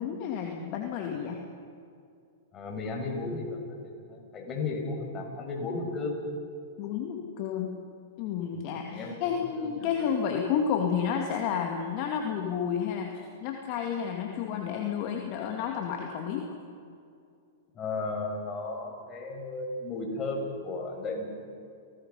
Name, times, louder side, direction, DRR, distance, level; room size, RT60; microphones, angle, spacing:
voice 1, 0.0-1.4 6.8-7.7 8.2-16.4, left 7 dB, 50° left, 2 dB, 2.4 m, -31 dB
voice 2, 2.5-6.2 8.5-8.6 8.9-10.1 17.7-21.3, left 3 dB, 30° left, 1 dB, 6.3 m, -35 dB
29.5 x 19.0 x 5.6 m, 2.4 s
hypercardioid pair, 110°, 0 cm